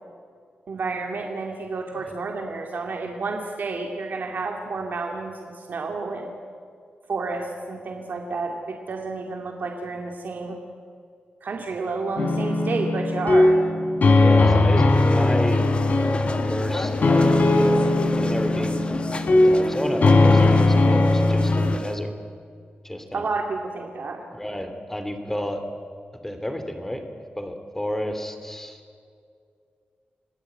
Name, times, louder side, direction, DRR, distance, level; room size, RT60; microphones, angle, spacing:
voice 1, 0.7-6.4 7.1-10.6 11.4-13.6 23.1-24.2, right 3 dB, 65° right, 1 dB, 2.5 m, -30 dB
sound 1, 12.2-21.8, left 2 dB, 60° left, 3.4 m, -19 dB
voice 2, 14.2-15.7 16.5-18.9 19.4-22.1 22.8-23.2 24.3-25.6 26.2-27.0 27.4-28.8, left 1 dB, 10° left, 7 dB, 3.0 m, -31 dB
sound 2, 14.9-22.0, left 2 dB, 35° left, 1.6 m, -32 dB
28.0 x 19.0 x 8.8 m, 2.3 s
wide cardioid pair, 125°, 3 cm